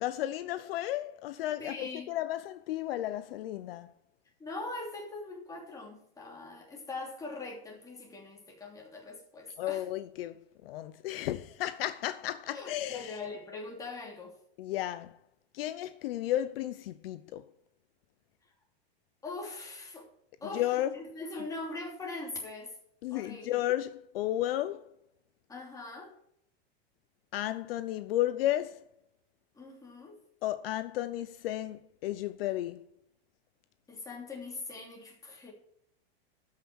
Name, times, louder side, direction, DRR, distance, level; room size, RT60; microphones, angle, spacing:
voice 1, 0.0-3.9 9.6-13.2 14.6-15.2 15.5-17.5 20.5-21.0 23.0-24.9 27.3-28.8 30.4-32.9, left 13 dB, 65° left, 0.7 m, -33 dB
voice 2, 1.6-2.1 4.4-9.8 12.5-14.3 19.2-20.1 20.4-22.8 23.1-23.5 25.5-26.1 29.5-30.2 33.9-35.5, left 3 dB, 10° left, 3.0 m, -42 dB
13.0 x 5.9 x 6.3 m
supercardioid pair, 145°, 31 cm